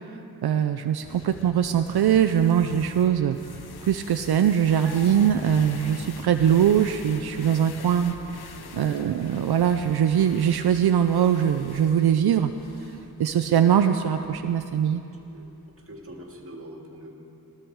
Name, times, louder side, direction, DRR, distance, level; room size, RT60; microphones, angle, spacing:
voice 1, 0.4-3.4 3.8-8.2 8.4-12.5 12.8-12.9 13.2-15.0, right 9 dB, 80° right, 7 dB, 0.5 m, -22 dB
sound 1, 1.0-16.4, left 6 dB, 80° left, 0.8 m, -45 dB
sound 2, 4.8-7.8 8.1-8.2, left 1 dB, 5° left, 3.1 m, -41 dB
voice 2, 8.3-8.7 15.3-15.5 15.8-17.1, equal, 35° right, 0 dB, 2.1 m, -43 dB
19.0 x 13.0 x 4.6 m, 3.0 s
wide cardioid pair, 120°, 37 cm